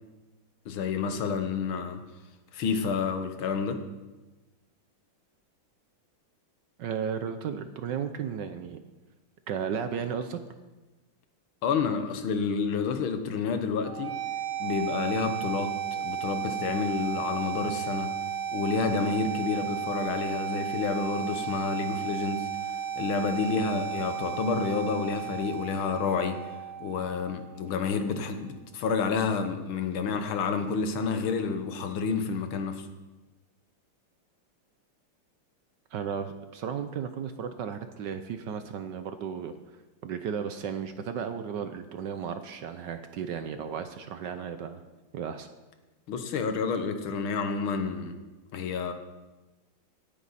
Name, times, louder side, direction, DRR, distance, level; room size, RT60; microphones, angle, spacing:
voice 1, 0.7-2.0 2.5-3.8 11.6-14.2 14.6-18.1 18.5-22.5 23.0-26.5 26.8-32.9 46.1-48.1 48.5-48.9, left 5 dB, 75° left, 7 dB, 1.8 m, -29 dB
voice 2, 6.8-8.8 9.5-10.4 35.9-39.5 40.0-44.8 45.1-45.5, right 7 dB, 65° right, 9 dB, 1.2 m, -34 dB
sound 1, 13.8-27.8, right 8 dB, 50° right, 2.4 m, -34 dB
17.5 x 9.5 x 4.1 m, 1.2 s
omnidirectional pair, 2.3 m